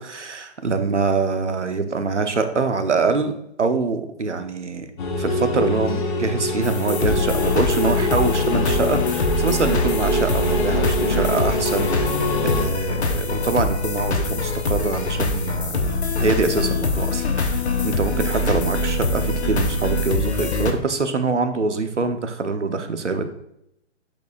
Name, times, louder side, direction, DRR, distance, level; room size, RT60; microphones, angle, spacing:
voice 1, 0.0-3.3 3.6-4.9 5.2-23.2, right 4 dB, 80° right, 8 dB, 1.0 m, -24 dB
sound 1, 5.0-12.6, left 2 dB, 45° left, 1.2 m, -25 dB
sound 2, 6.6-20.7, left 2 dB, 65° left, 1.1 m, -23 dB
8.3 x 6.4 x 2.5 m, 0.77 s
figure-of-eight pair, 130°, 35 cm